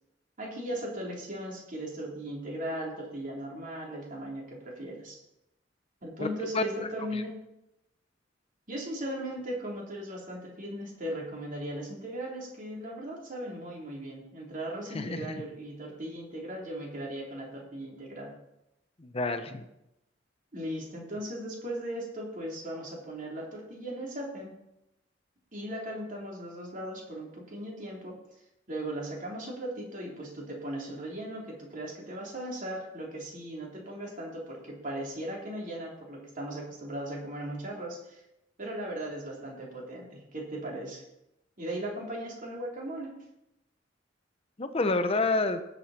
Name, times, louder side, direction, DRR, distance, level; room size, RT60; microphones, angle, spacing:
voice 1, 0.4-5.2 6.0-7.4 8.7-18.3 20.5-24.5 25.5-28.2 28.7-38.2 38.6-41.0 41.6-43.1, right 1 dB, 45° right, -2 dB, 3.5 m, -38 dB
voice 2, 14.9-15.4 19.0-19.6 44.6-45.6, left 3 dB, 35° left, 9 dB, 0.8 m, -28 dB
18.5 x 6.9 x 4.3 m, 0.87 s
head